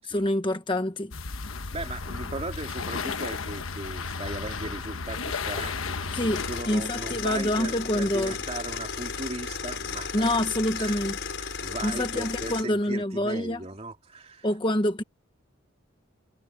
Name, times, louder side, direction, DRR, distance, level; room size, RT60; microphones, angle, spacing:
voice 1, 0.1-1.1 6.1-8.3 10.1-11.2 11.8-13.6 14.4-15.0, left 1 dB, 25° left, 1.2 m, -26 dB
sound 1, 1.1-6.6, left 4 dB, 85° left, 1.2 m, -33 dB
voice 2, 1.7-10.3 10.7-11.0 11.4-14.5, right 2 dB, 30° right, 3.1 m, -38 dB
sound 2, 6.3-12.6, left 5 dB, 65° left, 5.8 m, -34 dB
head